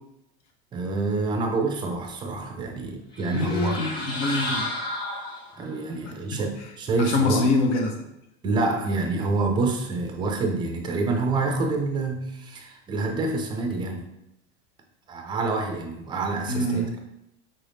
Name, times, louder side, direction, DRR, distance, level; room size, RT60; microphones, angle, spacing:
voice 1, 0.7-3.8 5.6-7.5 8.4-14.0 15.1-17.0, right 3 dB, 15° right, 3 dB, 0.4 m, -27 dB
sound 1, 3.1-5.8, left 1 dB, 15° left, 0.8 m, -32 dB
voice 2, 3.3-4.7 6.0-6.4 7.0-7.9 16.5-16.9, left 2 dB, 80° left, 3 dB, 0.9 m, -25 dB
5.4 x 2.6 x 3.4 m, 0.83 s
supercardioid pair, 145°, 33 cm